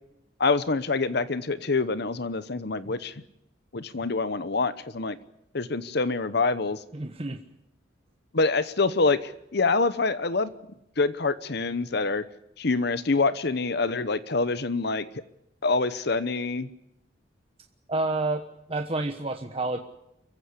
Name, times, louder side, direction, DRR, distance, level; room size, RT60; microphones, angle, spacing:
voice 1, 0.4-3.1 3.7-5.2 5.5-6.8 8.3-10.5 11.0-12.2 12.6-15.1 15.6-16.7, left 3 dB, 60° left, 14 dB, 0.9 m, -26 dB
voice 2, 6.9-7.4 17.9-18.4 18.7-19.8, right 2 dB, 30° right, 5 dB, 1.1 m, -29 dB
25.0 x 15.0 x 9.7 m, 0.85 s
head